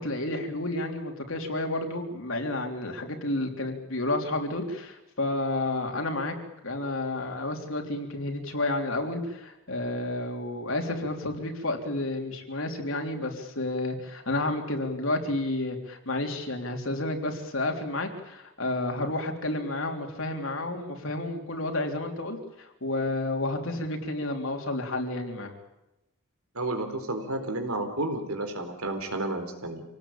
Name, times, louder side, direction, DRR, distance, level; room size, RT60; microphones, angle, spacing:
voice 1, 0.0-6.4 6.6-25.5, left 2 dB, 65° left, 3 dB, 3.6 m, -31 dB
voice 2, 26.5-29.8, right 2 dB, 90° right, 6 dB, 4.1 m, -31 dB
27.0 x 18.5 x 8.9 m, 0.96 s
head